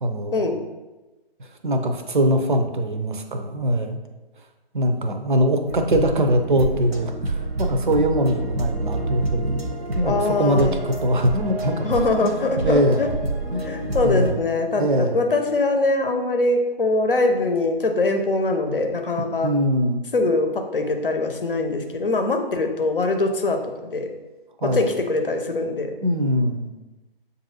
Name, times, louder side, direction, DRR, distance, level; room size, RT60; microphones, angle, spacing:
voice 1, 0.0-0.4 1.6-4.0 4.7-11.9 12.2-13.0 13.5-13.6 14.0-14.4 14.8-15.2 19.4-20.0 24.6-24.9 26.0-26.7, equal, 55° right, 6 dB, 0.6 m, -22 dB
sound 1, 5.7-14.3, right 2 dB, 80° right, 0.9 m, -28 dB
voice 2, 10.0-10.8 11.8-13.1 13.6-19.5 20.1-24.1 24.6-26.0, left 2 dB, 60° left, 5 dB, 0.7 m, -22 dB
6.9 x 2.6 x 2.8 m, 1.1 s
figure-of-eight pair, 145°, 30 cm